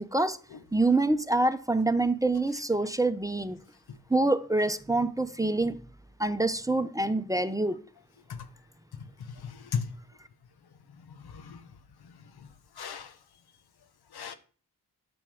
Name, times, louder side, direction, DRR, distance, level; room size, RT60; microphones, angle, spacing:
voice 1, 0.0-0.4 0.7-3.6 4.1-5.8 6.2-7.8, right 2 dB, 10° right, 0.8 m, -26 dB
voice 2, 9.4-9.9 11.1-11.6 12.8-13.1 14.1-14.3, left 6 dB, 80° left, 1.2 m, -36 dB
9.2 x 7.1 x 6.4 m
cardioid pair, 60°, 38 cm